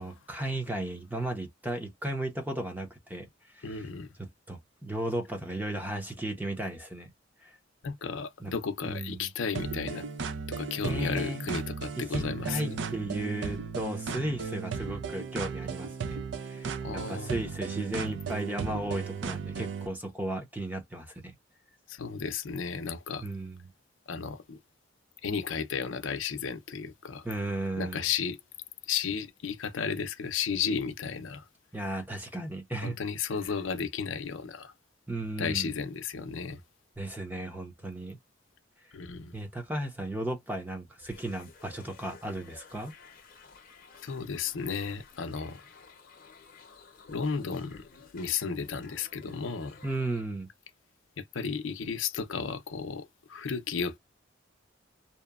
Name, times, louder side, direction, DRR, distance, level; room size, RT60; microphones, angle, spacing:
voice 1, 0.0-3.9 4.2-7.1 7.4-7.6 8.4-8.5 8.8-9.3 10.8-11.5 12.0-21.3 23.2-23.6 27.2-28.1 31.7-33.0 35.1-35.7 37.0-38.2 38.8-38.9 39.3-42.9 49.8-50.5, right 1 dB, 10° right, 0.6 m, -35 dB
voice 2, 3.6-4.1 7.8-10.1 10.5-12.8 16.8-17.3 21.9-23.2 24.1-24.6 25.2-27.3 27.8-28.4 28.8-31.5 32.8-34.7 35.4-36.6 38.9-39.3 44.0-45.7 47.1-49.8 51.2-54.0, left 6 dB, 85° left, 0.5 m, -34 dB
sound 1, 9.5-19.9, right 5 dB, 65° right, 0.4 m, -36 dB
sound 2, 41.0-50.2, left 5 dB, 50° left, 0.7 m, -54 dB
2.8 x 2.1 x 2.3 m
head